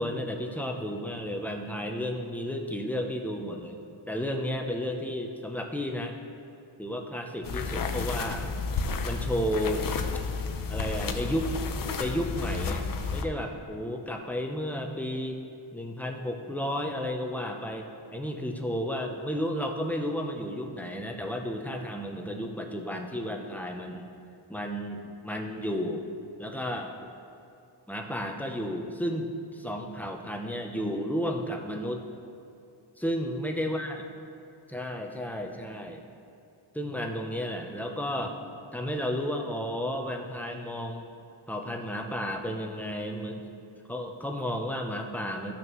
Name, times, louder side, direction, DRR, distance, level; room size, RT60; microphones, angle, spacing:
voice 1, 0.0-6.2 6.8-8.6 9.0-9.9 10.7-11.5 12.0-12.9 13.1-15.4 15.7-24.1 24.5-26.1 26.4-26.9 27.9-32.1 33.0-34.0 34.7-36.0 36.7-38.4 38.7-41.1 41.5-43.4 43.9-45.5, equal, 5° left, 2 dB, 0.5 m, -32 dB
sound 1, 7.4-13.2, left 4 dB, 45° left, 0.6 m, -31 dB
15.5 x 6.2 x 3.0 m, 2.6 s
wide cardioid pair, 175°, 47 cm